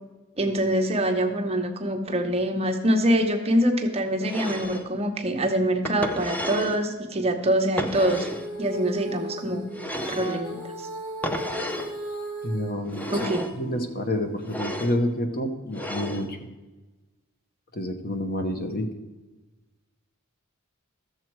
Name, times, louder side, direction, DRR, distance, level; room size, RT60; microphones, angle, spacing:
voice 1, 0.4-8.3 8.6-9.7 10.1-10.6 13.1-13.4, right 1 dB, 30° right, 4 dB, 0.9 m, -24 dB
sound 1, 4.2-4.9 5.9-6.8 7.8-8.5 9.7-10.4 11.2-11.9 12.9-13.6 14.4-15.0 15.7-16.3, equal, 5° left, 0.6 m, -32 dB
Female singing, 7.9-14.4, right 1 dB, 70° left, 3.0 m, -36 dB
voice 2, 12.4-13.1 13.6-16.4 17.7-18.9, left 1 dB, 45° left, 6 dB, 1.0 m, -28 dB
13.0 x 7.2 x 4.6 m, 1.2 s
head